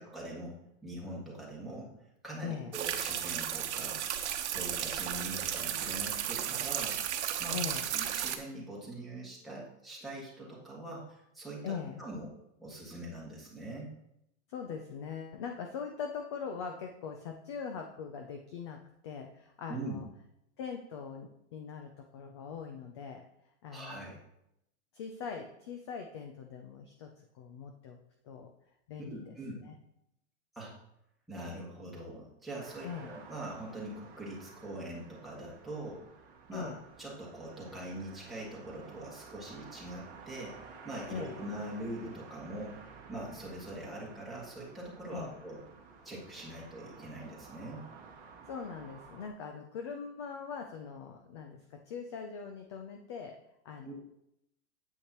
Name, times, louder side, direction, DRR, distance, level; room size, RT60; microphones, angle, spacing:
voice 1, 0.0-1.9 2.2-4.0 4.4-7.0 7.4-7.6 7.9-12.3 12.6-13.9 19.7-20.0 23.7-24.2 29.0-29.6 30.5-30.7 31.3-36.1 36.5-36.7 37.0-45.6 46.0-47.9 53.8-54.0, right 1 dB, ahead, -6 dB, 1.7 m, -43 dB
voice 2, 2.4-2.7 7.5-7.9 11.6-12.0 14.5-20.0 20.6-23.2 23.6-24.1 24.9-27.1 27.3-28.0 28.2-28.5 28.9-29.8 32.8-33.1 36.5-36.8 41.1-41.5 45.1-45.3 48.5-53.3 53.6-54.0, left 6 dB, 25° left, 4 dB, 0.4 m, -41 dB
sound 1, 2.7-8.4, right 10 dB, 70° right, 1.0 m, -34 dB
sound 2, 32.6-49.3, right 5 dB, 25° right, 1.2 m, -53 dB
8.4 x 8.3 x 2.9 m, 0.80 s
supercardioid pair, 165°, 35 cm